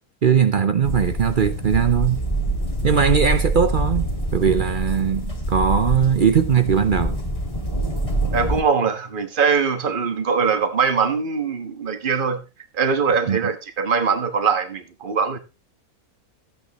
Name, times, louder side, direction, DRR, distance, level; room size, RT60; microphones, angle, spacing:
voice 1, 0.2-2.2 2.8-7.2 13.3-13.4, right 7 dB, 60° right, 0.5 m, -19 dB
sound 1, 0.8-8.6, right 1 dB, 20° left, 2.5 m, -25 dB
voice 2, 8.3-12.4 12.7-15.4, right 5 dB, 35° right, 1.4 m, -22 dB
15.0 x 8.9 x 3.0 m
omnidirectional pair, 1.6 m